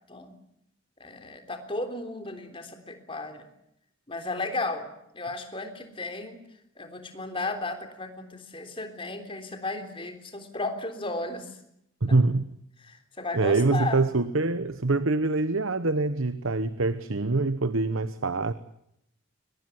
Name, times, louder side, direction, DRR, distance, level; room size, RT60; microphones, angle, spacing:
voice 1, 1.0-3.5 4.1-6.4 6.8-11.6 12.8-14.1, left 2 dB, 25° left, 6 dB, 3.5 m, -34 dB
voice 2, 12.0-12.4 13.3-18.5, right 3 dB, 80° right, 13 dB, 1.1 m, -25 dB
23.5 x 20.5 x 9.5 m, 0.78 s
head